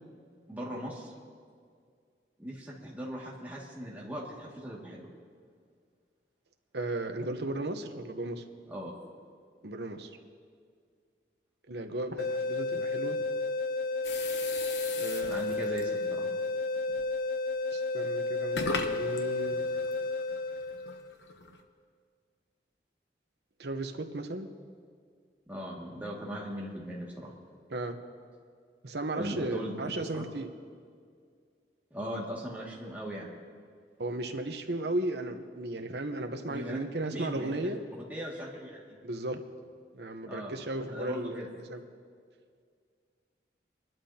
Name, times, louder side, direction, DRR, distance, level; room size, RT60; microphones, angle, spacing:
voice 1, 0.5-1.1 2.4-5.1 8.7-8.9 15.3-16.3 25.5-27.3 29.1-29.7 30.1-30.2 31.9-33.3 36.5-36.8 37.1-37.7 38.1-39.0 40.3-40.5 40.9-41.5, equal, 10° right, -5 dB, 2.1 m, -39 dB
voice 2, 6.7-8.4 9.6-10.1 11.7-13.2 14.9-15.4 17.7-19.6 23.6-24.5 27.7-28.0 28.8-30.5 34.0-37.8 39.0-39.4 39.9-41.8, right 2 dB, 70° right, 6 dB, 1.0 m, -35 dB
sound 1, 12.2-21.1, left 3 dB, 50° left, 0.5 m, -32 dB
sound 2, 14.0-16.0 16.9-17.1 17.8-17.9 18.4-21.6, left 3 dB, 85° left, 1.0 m, -39 dB
24.5 x 12.0 x 2.9 m, 2.1 s
head